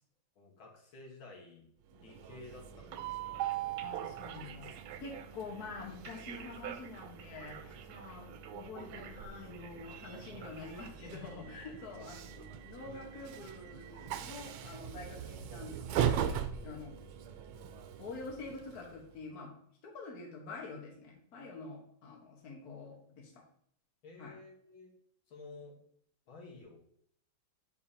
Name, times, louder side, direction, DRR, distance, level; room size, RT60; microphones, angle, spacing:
voice 1, 0.4-3.5 11.9-12.1 24.0-24.9 25.3-25.8 26.3-26.8, left 3 dB, 85° left, -1 dB, 2.2 m, -52 dB
Train, 1.9-19.2, right 9 dB, 90° right, 1.4 m, -40 dB
voice 2, 3.8-4.7 5.0-17.0 18.0-19.5 19.8-23.3 24.2-24.3, left 4 dB, 55° left, -1 dB, 1.7 m, -47 dB
7.1 x 5.0 x 2.8 m, 0.65 s
omnidirectional pair, 2.2 m